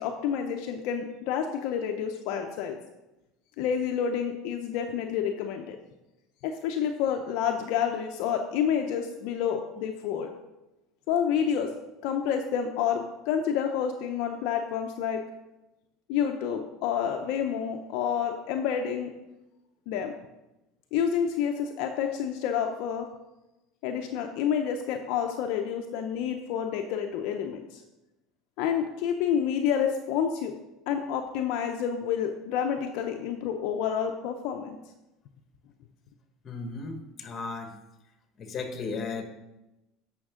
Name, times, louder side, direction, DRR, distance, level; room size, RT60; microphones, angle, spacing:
voice 1, 0.0-2.8 3.6-5.8 6.4-10.3 11.1-11.7 12.0-15.2 16.1-19.1 19.9-20.1 20.9-23.1 23.8-27.8 28.6-30.5 30.9-34.8, left 8 dB, 70° left, 4 dB, 0.6 m, -29 dB
voice 2, 36.4-37.7 38.4-39.2, left 4 dB, 35° left, 5 dB, 1.4 m, -35 dB
8.7 x 5.9 x 3.7 m, 0.97 s
supercardioid pair, 105°, 0 cm